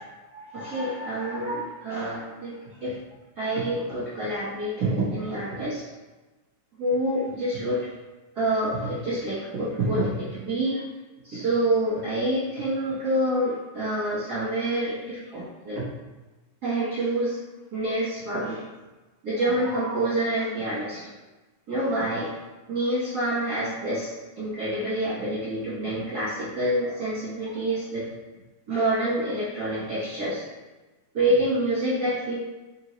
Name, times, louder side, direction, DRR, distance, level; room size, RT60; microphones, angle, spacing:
voice 1, 0.0-3.0 3.4-5.8 6.8-7.9 8.3-10.8 11.2-15.9 16.6-17.4 17.7-18.6 19.2-21.1 21.7-22.3 22.7-28.1 28.7-30.5 31.1-32.3, right 1 dB, 55° right, -10 dB, 1.0 m, -27 dB
4.6 x 3.0 x 3.1 m, 1.2 s
omnidirectional pair, 3.4 m